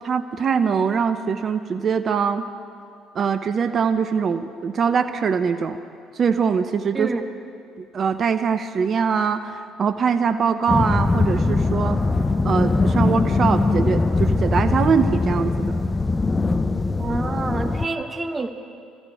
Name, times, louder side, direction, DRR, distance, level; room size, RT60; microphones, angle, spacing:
voice 1, 0.0-2.5 3.1-5.8 6.2-7.1 7.8-12.0 12.4-15.8, right 6 dB, 50° right, 10 dB, 0.7 m, -22 dB
sound 1, 10.7-17.9, left 3 dB, 25° left, 0.7 m, -21 dB
voice 2, 17.0-18.5, right 3 dB, 30° right, 8 dB, 1.1 m, -27 dB
24.0 x 14.5 x 3.6 m, 2.4 s
hypercardioid pair, 55°, 0 cm